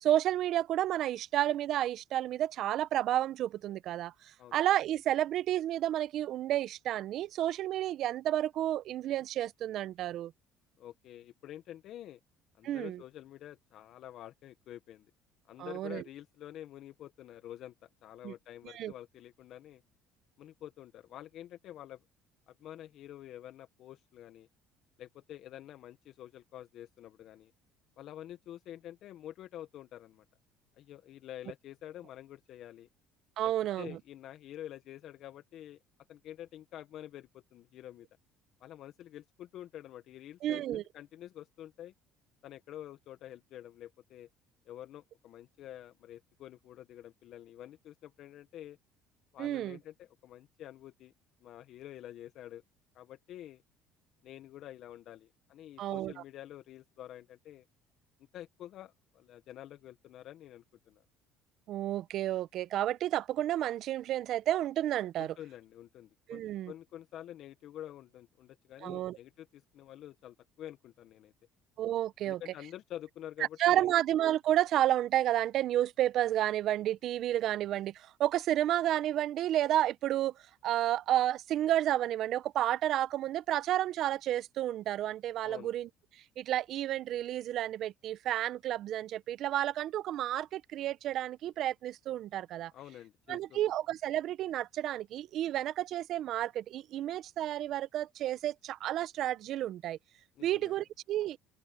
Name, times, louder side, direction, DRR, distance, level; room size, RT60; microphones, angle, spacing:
voice 1, 0.0-4.1 4.5-10.3 12.6-13.0 15.6-16.0 18.2-18.3 18.6-18.9 33.4-34.0 40.4-40.8 49.4-49.8 55.8-56.1 61.7-65.3 66.3-66.7 68.8-69.2 71.8-72.4 73.6-80.3 80.6-85.9 86.4-92.7 93.3-100.0 100.4-101.4, right 12 dB, 60° right, 1.0 m, -31 dB
voice 2, 10.8-12.2 12.6-15.1 15.5-19.8 20.4-22.0 22.5-24.5 25.0-27.5 28.0-30.2 30.8-32.9 33.4-35.8 36.1-38.1 38.6-40.6 40.9-41.9 42.4-44.3 44.7-48.8 49.3-51.1 51.4-52.6 52.9-53.6 54.2-57.7 58.3-61.0 65.2-71.3 72.2-73.9 85.4-85.7 92.7-93.6 100.4-100.7, left 12 dB, 60° left, 1.4 m, -48 dB
open air
supercardioid pair, 75°, 0 cm